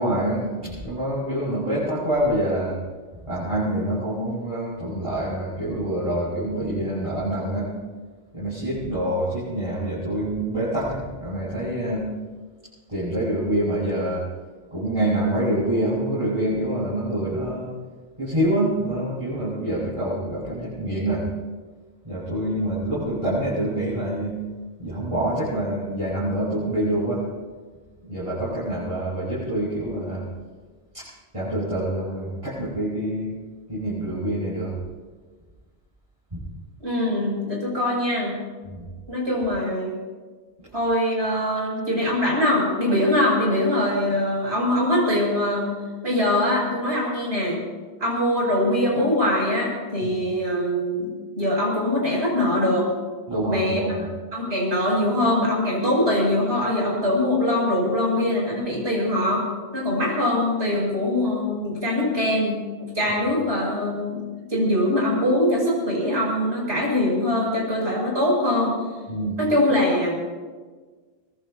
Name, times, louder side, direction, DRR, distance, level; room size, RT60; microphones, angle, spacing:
voice 1, 0.0-2.8 3.3-7.7 8.3-12.1 12.9-14.3 14.7-17.7 18.2-21.2 22.1-24.4 24.8-27.2 28.0-30.2 30.9-31.1 31.3-33.3 33.7-34.7 36.3-36.5 38.7-38.9 53.3-54.1 69.1-69.4, right 1 dB, 30° right, -9 dB, 6.9 m, -26 dB
voice 2, 36.8-38.4 39.1-39.9 40.7-45.7 46.0-47.6 48.0-52.9 53.5-53.8 54.3-59.5 59.7-62.6 62.9-64.2 64.5-68.7 69.4-70.1, left 1 dB, 85° right, -3 dB, 7.7 m, -22 dB
24.0 x 20.5 x 2.9 m, 1.4 s
omnidirectional pair, 1.1 m